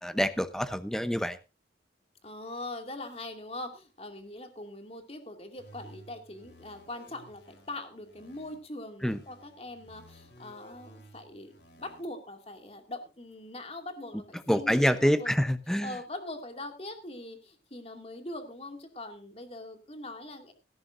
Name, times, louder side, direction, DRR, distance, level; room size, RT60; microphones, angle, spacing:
voice 1, 0.0-1.4 9.0-9.2 14.5-15.9, equal, 5° left, 12 dB, 0.8 m, -26 dB
voice 2, 2.2-15.4 15.8-20.5, left 2 dB, 35° left, 6 dB, 2.4 m, -42 dB
sound 1, 5.6-8.6 9.0-12.0, right 1 dB, 85° left, 4.0 m, -55 dB
17.5 x 13.5 x 2.6 m, 0.28 s
head